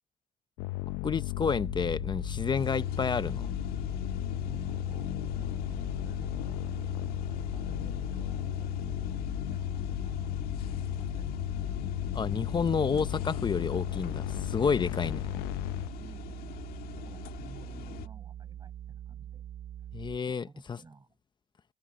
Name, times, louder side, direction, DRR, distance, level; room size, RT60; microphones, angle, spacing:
sound 1, 0.6-15.9, left 20 dB, 90° left, 0.9 m, -35 dB
voice 1, 1.0-3.5 12.1-15.2 19.9-20.8, left 5 dB, 30° left, 1.1 m, -30 dB
sound 2, 1.4-20.2, right 10 dB, 50° right, 1.0 m, -43 dB
sound 3, 2.5-18.1, left 13 dB, 65° left, 1.9 m, -44 dB
voice 2, 4.4-7.0 7.5-10.4 10.6-11.4 14.9-15.4 16.0-16.7 16.9-19.5 19.8-19.9 20.3-21.2, right 4 dB, 25° right, 7.5 m, -55 dB
cardioid pair, 100°, 16 cm